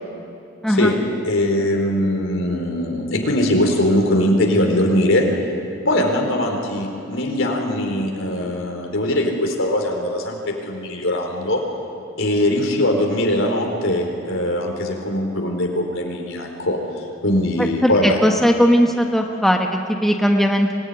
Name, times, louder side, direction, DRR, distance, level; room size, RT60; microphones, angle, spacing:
voice 1, 1.2-5.3 5.8-11.6 12.2-18.2, left 1 dB, 70° left, 2 dB, 4.3 m, -21 dB
voice 2, 17.6-20.7, equal, ahead, 2 dB, 1.2 m, -18 dB
25.5 x 19.0 x 10.0 m, 2.9 s
head